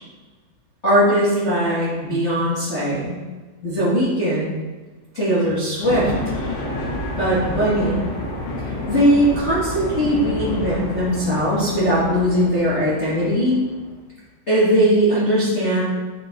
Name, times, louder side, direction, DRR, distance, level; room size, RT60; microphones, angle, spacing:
voice 1, 0.8-3.2 3.6-4.5 5.1-6.1 7.1-8.0 8.6-13.6 14.5-15.8, equal, 40° left, -11 dB, 0.9 m, -19 dB
sound 1, 5.8-13.9, left 1 dB, 75° left, 4.1 m, -29 dB
10.0 x 4.5 x 3.8 m, 1.3 s
omnidirectional pair, 5.5 m